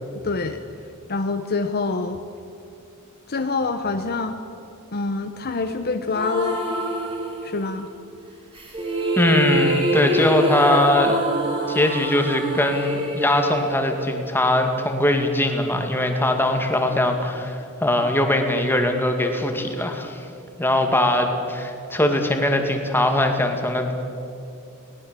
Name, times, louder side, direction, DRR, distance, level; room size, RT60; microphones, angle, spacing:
voice 1, 0.2-0.6 1.1-2.2 3.3-4.4 4.9-6.6 7.4-7.9, left 4 dB, 45° left, 7 dB, 0.9 m, -25 dB
sound 1, 6.1-7.8 8.5-14.6, right 1 dB, 25° right, 3.8 m, -26 dB
voice 2, 9.2-11.2 11.7-20.2 20.6-23.9, left 1 dB, 10° left, 4 dB, 2.2 m, -21 dB
21.0 x 18.5 x 7.6 m, 2.7 s
head